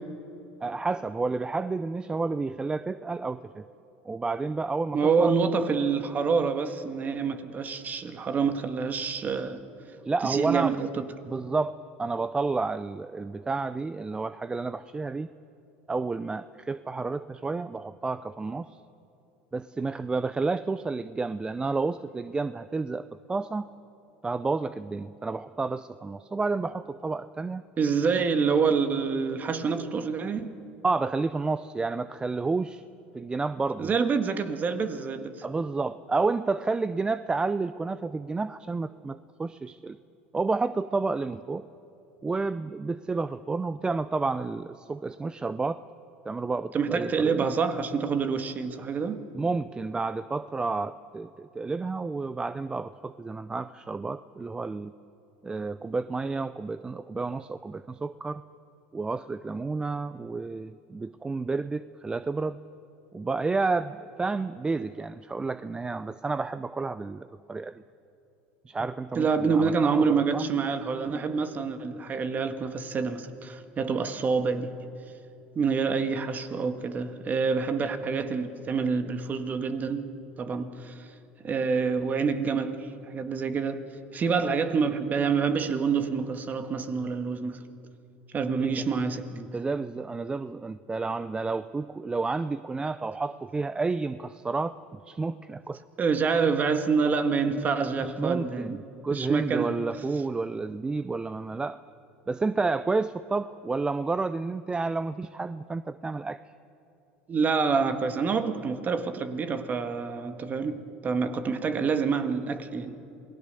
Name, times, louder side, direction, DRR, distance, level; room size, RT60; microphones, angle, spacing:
voice 1, 0.6-3.6 4.0-5.3 10.0-10.8 11.2-15.3 15.9-18.8 19.5-23.7 24.2-27.6 30.8-32.8 33.1-33.9 35.4-40.0 40.3-41.6 42.2-45.8 46.2-47.5 49.3-54.9 55.4-58.4 58.9-62.6 63.1-67.8 68.7-70.5 88.5-88.9 89.3-95.8 96.3-96.4 98.0-101.8 102.3-106.4, right 3 dB, 15° right, 0.6 m, -30 dB
voice 2, 4.9-9.6 10.2-10.9 27.8-30.5 33.8-35.4 46.7-49.2 69.2-74.7 75.6-80.1 80.4-80.9 81.4-83.8 84.1-87.6 88.3-89.3 96.0-98.8 99.1-99.8 107.3-113.0, right 5 dB, 35° right, 1.8 m, -27 dB
27.5 x 19.0 x 6.9 m
hypercardioid pair, 90°, 5 cm